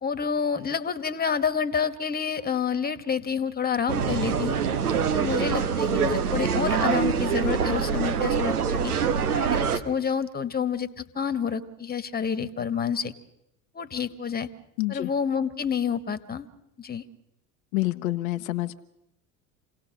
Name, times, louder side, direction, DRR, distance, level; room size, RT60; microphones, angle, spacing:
voice 1, 0.0-4.6 5.1-8.9 9.3-13.1 13.7-14.5 14.9-16.5 16.8-17.0, left 7 dB, 20° left, 13 dB, 1.5 m, -28 dB
sound 1, 3.9-9.8, right 6 dB, 85° right, 1.2 m, -25 dB
voice 2, 14.8-15.1 17.7-18.8, left 17 dB, 70° left, 9 dB, 0.9 m, -27 dB
27.5 x 17.5 x 6.5 m, 0.87 s
hypercardioid pair, 70°, 43 cm